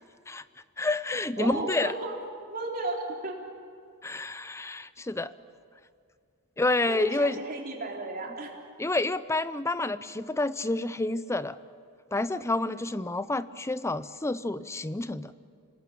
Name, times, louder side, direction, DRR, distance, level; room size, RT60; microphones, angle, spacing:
voice 1, 0.8-1.9 4.0-5.3 6.6-7.4 8.8-11.6 12.1-15.3, left 2 dB, 10° left, 15 dB, 0.5 m, -29 dB
voice 2, 1.4-2.1 2.5-3.4 6.9-8.5, right 2 dB, 40° right, 0 dB, 3.9 m, -34 dB
27.0 x 19.5 x 8.4 m, 2.3 s
head